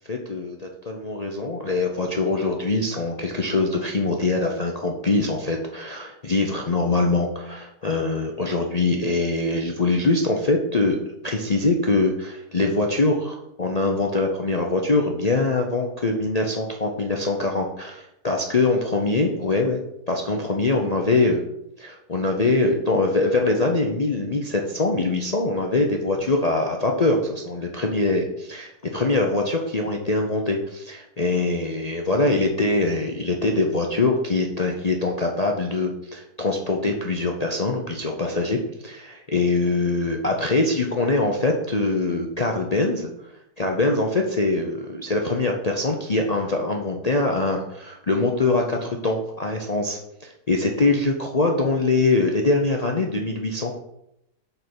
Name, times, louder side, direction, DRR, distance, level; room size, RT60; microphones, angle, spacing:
voice 1, 0.1-11.0 11.2-19.8 20.1-21.4 21.8-43.1 43.6-53.8, left 2 dB, 40° left, 2 dB, 0.6 m, -23 dB
6.8 x 5.2 x 6.1 m, 0.81 s
omnidirectional pair, 1.7 m